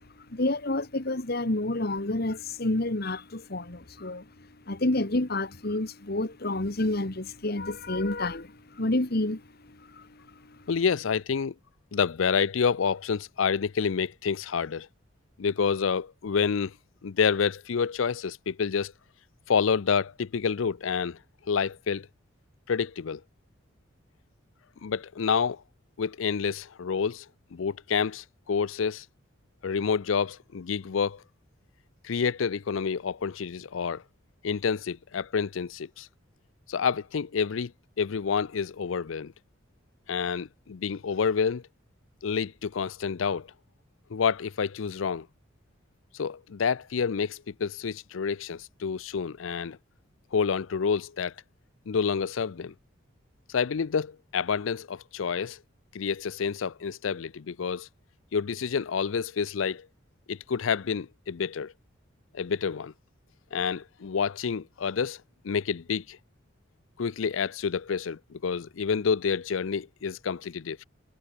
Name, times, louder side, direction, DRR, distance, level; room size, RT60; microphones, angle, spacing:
voice 1, 0.3-4.2 4.7-10.1 10.5-10.6, left 2 dB, 50° left, 1.7 m, -29 dB
voice 2, 10.7-11.5 11.9-14.9 15.4-16.7 17.0-18.9 19.5-21.2 21.5-22.1 22.7-23.2 24.8-25.6 26.0-27.3 27.5-29.1 29.6-31.2 32.0-34.0 34.4-36.1 36.7-37.7 38.0-39.3 40.1-41.6 42.2-43.5 44.1-45.3 46.1-49.8 50.3-51.3 51.9-52.7 53.5-55.6 55.9-57.9 58.3-59.9 60.3-61.7 62.3-62.9 63.5-66.2 67.0-70.8, left 6 dB, 80° left, 0.5 m, -28 dB
head